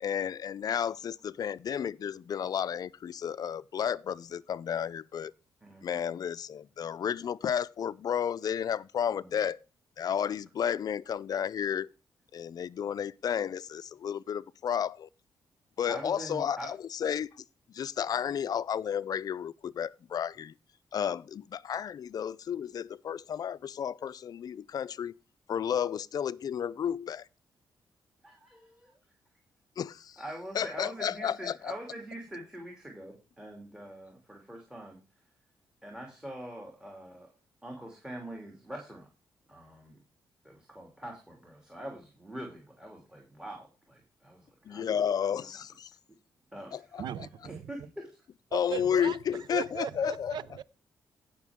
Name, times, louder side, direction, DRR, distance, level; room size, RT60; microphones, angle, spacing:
voice 1, 0.0-5.3 5.8-9.6 10.0-11.9 12.3-15.1 15.8-17.3 17.7-20.5 20.9-25.1 25.5-27.3 29.8-30.2 30.5-31.7 44.7-45.9 46.7-47.3 48.5-50.4, left 8 dB, 55° left, 0.5 m, -32 dB
voice 2, 15.9-16.7 18.1-18.4 28.2-29.0 30.2-35.0 35.8-37.3 37.6-39.1 39.5-40.0 40.4-45.3 46.5-47.1 47.4-48.2, right 1 dB, 10° right, 2.8 m, -44 dB
voice 3, 47.0-47.7 48.5-49.2 49.5-50.6, right 10 dB, 75° right, 0.6 m, -37 dB
16.5 x 6.0 x 3.6 m
cardioid pair, 100°, 8 cm